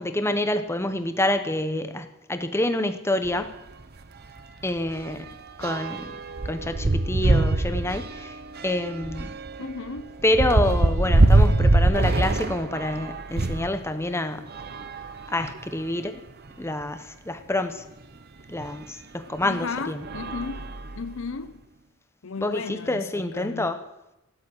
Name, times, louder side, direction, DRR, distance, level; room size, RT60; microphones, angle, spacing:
voice 1, 0.0-3.5 4.6-5.3 5.6-6.1 6.4-9.3 10.2-14.4 15.3-16.2 16.6-17.8 18.5-20.1 22.4-23.8, left 1 dB, 10° left, 1.0 m, -27 dB
sound 1, 3.2-3.4 3.8-4.0 4.2-13.7 14.4-15.8 16.5-16.6 16.8-16.9 18.6-18.7 19.4-19.6 20.0-21.3, right 2 dB, 45° right, 0.9 m, -24 dB
voice 2, 9.6-10.1 19.4-21.6 22.2-23.7, left 4 dB, 65° left, 0.7 m, -35 dB
13.5 x 11.5 x 7.9 m
head